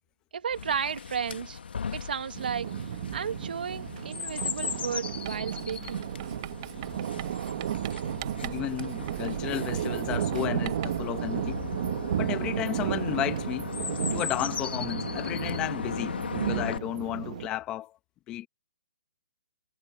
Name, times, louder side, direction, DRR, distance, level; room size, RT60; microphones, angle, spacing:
voice 1, 0.3-1.6 1.9-2.7 3.1-6.0, right 7 dB, 65° right, 2.5 m, -33 dB
Chirp tweet, 0.5-16.8, left 6 dB, 80° left, 2.0 m, -37 dB
sound 1, 2.3-17.5, right 10 dB, 45° right, 1.4 m, -33 dB
Writing, 5.3-11.1, right 19 dB, 30° right, 5.2 m, -44 dB
voice 2, 8.4-11.6 12.2-13.7 14.1-17.9 18.3-18.5, left 14 dB, 15° left, 1.2 m, -33 dB
hypercardioid pair, 170°, 5 cm